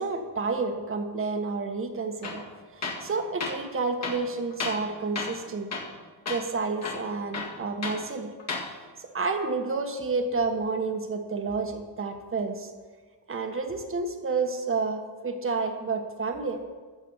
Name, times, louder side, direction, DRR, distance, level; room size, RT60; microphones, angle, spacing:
voice 1, 0.0-2.4 2.7-5.7 6.3-8.3 9.0-12.7 13.3-16.6, right 4 dB, 30° right, 5 dB, 1.5 m, -30 dB
Tools, 2.2-2.4 2.8-3.1 3.4-3.6 4.0-4.9 5.2-5.4 5.7-6.0 6.3-6.4 6.8-8.0 8.4-8.7, left 3 dB, 35° left, 2.1 m, -33 dB
14.0 x 4.9 x 8.0 m, 1.4 s
cardioid pair, 105°, 43 cm